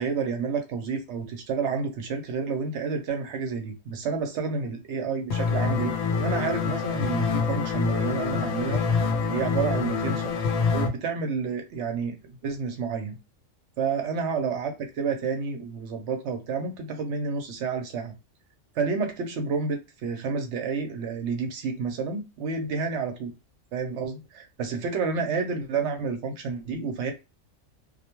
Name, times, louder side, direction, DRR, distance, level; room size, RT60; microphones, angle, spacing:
voice 1, 0.0-5.9 6.2-8.9 9.3-10.3 10.7-12.2 12.4-13.2 13.8-18.1 18.8-23.3 23.7-27.1, right 5 dB, 70° right, 0.8 m, -30 dB
sound 1, 5.3-10.9, left 5 dB, 65° left, 0.8 m, -26 dB
2.3 x 2.1 x 2.9 m
omnidirectional pair, 1.3 m